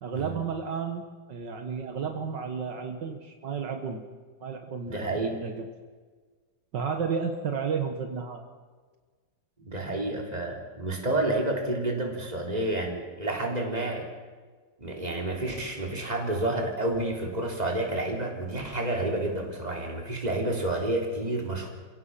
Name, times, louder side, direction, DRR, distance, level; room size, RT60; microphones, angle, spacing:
voice 1, 0.0-4.0 4.4-5.7 6.7-8.4, right 6 dB, 70° right, 5 dB, 2.2 m, -32 dB
voice 2, 4.8-5.4 9.6-14.1 14.8-21.7, right 2 dB, 20° right, 1 dB, 3.8 m, -29 dB
28.5 x 17.0 x 5.8 m, 1.5 s
omnidirectional pair, 2.0 m